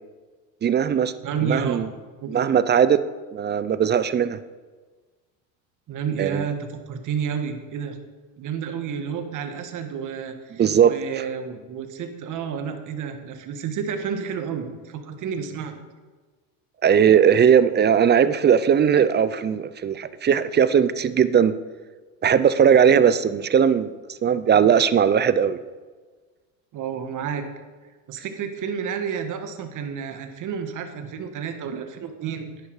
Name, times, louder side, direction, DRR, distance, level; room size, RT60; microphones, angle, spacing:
voice 1, 0.6-1.1 1.5-1.9 2.3-3.0 3.3-4.4 6.2-6.4 10.6-10.9 16.8-21.5 22.2-25.6, right 8 dB, 25° right, 14 dB, 0.6 m, -18 dB
voice 2, 1.2-1.9 2.2-2.3 5.9-8.0 8.4-15.7 26.7-27.5 28.1-32.5, right 7 dB, 50° right, 7 dB, 1.8 m, -30 dB
10.5 x 10.5 x 4.9 m, 1.4 s
supercardioid pair, 95°, 39 cm